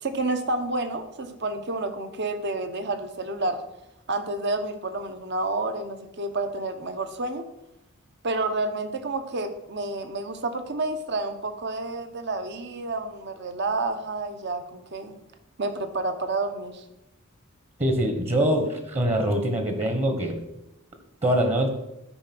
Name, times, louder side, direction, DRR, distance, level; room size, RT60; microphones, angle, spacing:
voice 1, 0.0-3.6 4.1-7.4 8.2-15.1 15.6-16.8, right 2 dB, 55° right, 8 dB, 1.0 m, -29 dB
voice 2, 17.8-20.4 21.2-21.7, right 1 dB, 30° right, 5 dB, 1.2 m, -23 dB
13.0 x 4.9 x 6.1 m, 0.89 s
head